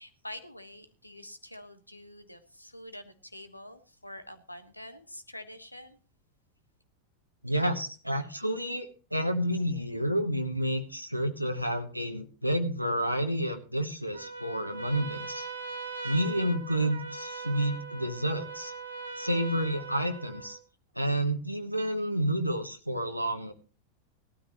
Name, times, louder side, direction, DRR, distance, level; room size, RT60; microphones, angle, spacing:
voice 1, 0.0-6.0, left 1 dB, 85° left, 9 dB, 1.5 m, -46 dB
voice 2, 7.4-15.5 16.0-18.7 19.2-20.6 20.9-23.5, right 1 dB, 90° right, 6 dB, 1.2 m, -30 dB
Trumpet, 14.1-20.6, right 3 dB, 70° right, 1.6 m, -40 dB
18.5 x 12.5 x 3.0 m, 0.35 s
figure-of-eight pair, 90°, 0 cm